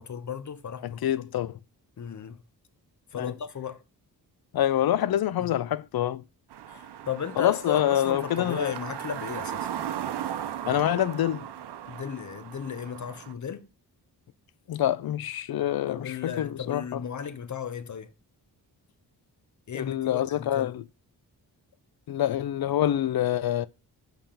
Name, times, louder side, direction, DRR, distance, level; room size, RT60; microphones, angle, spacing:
voice 1, 0.0-1.0 2.0-2.4 3.1-3.8 5.4-5.5 6.7-9.7 11.9-13.7 15.9-18.1 19.7-20.7, left 7 dB, 45° left, 0.9 m, -35 dB
voice 2, 0.8-1.6 3.1-3.3 4.5-6.2 7.4-8.7 10.6-11.5 14.7-17.0 19.7-20.8 22.1-23.7, left 12 dB, 65° left, 0.5 m, -26 dB
sound 1, 6.5-13.3, right 10 dB, 85° right, 0.7 m, -37 dB
5.5 x 3.5 x 5.6 m
cardioid pair, 85°, 39 cm